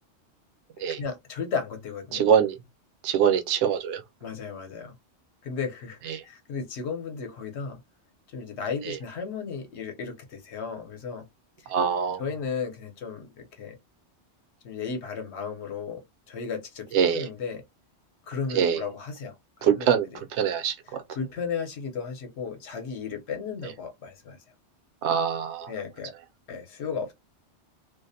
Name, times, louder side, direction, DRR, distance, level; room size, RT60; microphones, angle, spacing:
voice 1, 1.0-2.2 4.2-4.9 5.4-7.8 8.3-11.3 12.2-13.8 14.6-17.6 18.3-20.2 20.9-24.4 25.7-26.1 26.5-27.1, left 5 dB, 70° left, 1.0 m, -35 dB
voice 2, 2.1-2.6 3.0-4.0 6.1-6.2 8.9-9.0 11.7-12.2 16.9-17.3 18.5-18.8 19.6-20.1 20.3-21.0 25.0-25.7, right 7 dB, 75° right, 0.8 m, -23 dB
2.5 x 2.0 x 2.6 m
omnidirectional pair, 1.2 m